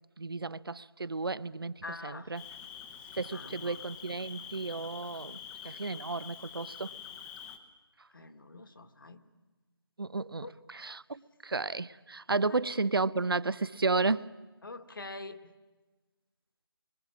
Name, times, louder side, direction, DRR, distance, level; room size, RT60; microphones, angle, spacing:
voice 1, 0.2-2.4 3.1-6.9 10.0-14.3, right 3 dB, 65° right, 19 dB, 0.8 m, -33 dB
voice 2, 1.8-2.3 3.3-3.8 8.1-9.2 10.4-10.5 12.5-12.6 14.6-15.4, left 3 dB, 60° left, 9 dB, 1.9 m, -44 dB
Cricket, 2.3-7.6, left 8 dB, 10° left, 0.9 m, -46 dB
27.0 x 24.0 x 7.4 m, 1.3 s
figure-of-eight pair, 160°, 13 cm